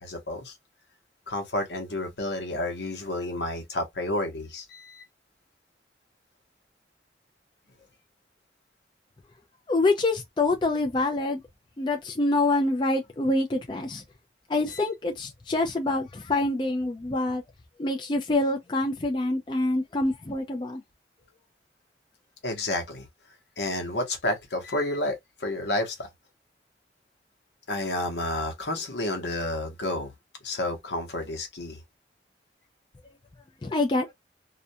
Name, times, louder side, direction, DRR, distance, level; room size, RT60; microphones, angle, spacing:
voice 1, 0.0-0.5 1.3-5.0 14.7-14.8 22.4-23.1 23.6-26.1 27.7-30.1 30.4-31.8, left 1 dB, 80° left, 0.9 m, -30 dB
voice 2, 9.7-11.4 11.8-14.0 14.5-17.4 17.8-20.8 33.6-34.1, left 2 dB, 25° left, 0.4 m, -26 dB
2.4 x 2.2 x 2.6 m
head